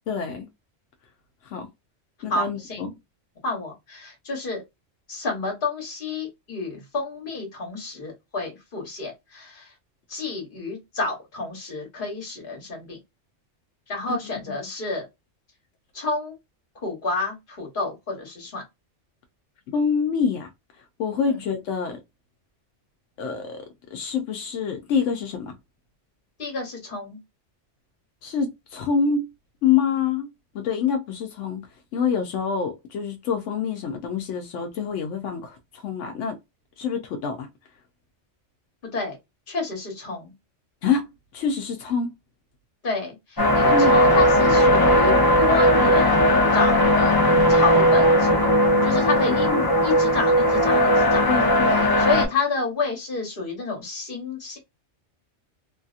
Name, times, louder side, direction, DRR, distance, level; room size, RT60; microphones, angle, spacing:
voice 1, 0.1-0.5 1.4-1.7 2.2-2.9 14.1-14.2 14.5-14.6 19.7-20.5 21.0-22.0 23.2-23.6 23.9-25.5 28.2-29.3 29.6-30.3 30.5-31.7 31.9-36.4 36.8-37.5 40.8-41.1 41.3-42.1 43.7-44.0 49.2-49.7 51.3-51.9, left 6 dB, 80° left, 0.9 m, -26 dB
voice 2, 2.3-2.8 3.4-4.6 5.1-9.7 10.1-13.0 13.9-15.1 15.9-16.3 16.8-18.6 21.3-21.4 26.4-27.2 38.9-39.2 39.5-40.3 42.8-46.2 46.5-47.2 47.5-49.5 49.8-51.4 52.0-54.6, left 3 dB, 45° left, 1.2 m, -29 dB
sound 1, 43.4-52.3, equal, 25° left, 0.5 m, -18 dB
2.7 x 2.6 x 2.4 m
omnidirectional pair, 1.2 m